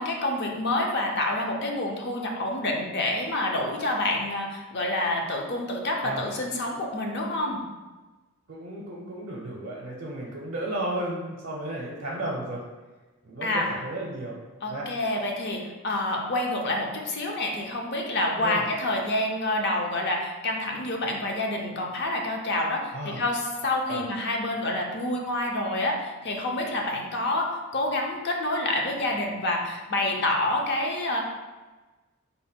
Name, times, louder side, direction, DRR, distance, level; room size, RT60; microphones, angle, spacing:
voice 1, 0.0-7.6 13.4-13.7 14.6-31.2, left 1 dB, 50° left, 1 dB, 0.5 m, -28 dB
voice 2, 8.5-12.6 13.2-14.4 14.7-14.9 18.4-18.6 22.9-23.2 23.9-24.0, right 1 dB, 65° right, -3 dB, 0.6 m, -33 dB
3.4 x 2.2 x 4.3 m, 1.2 s
head